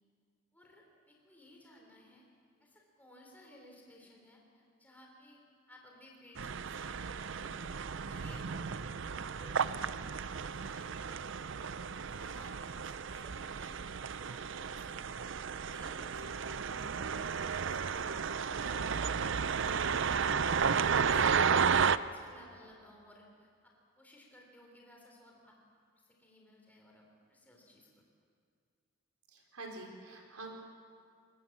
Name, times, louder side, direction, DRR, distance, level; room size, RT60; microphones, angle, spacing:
voice 1, 0.5-2.2 2.6-5.4 5.7-8.8 9.1-11.5 11.9-15.1 15.4-20.4 20.7-25.6 25.9-28.0, left 1 dB, 10° left, -1 dB, 3.8 m, -58 dB
sound 1, 6.4-22.0, right 6 dB, 55° right, 0.5 m, -33 dB
voice 2, 29.3-30.5, right 2 dB, 90° right, 1 dB, 4.6 m, -46 dB
24.5 x 20.5 x 7.4 m, 2.3 s
head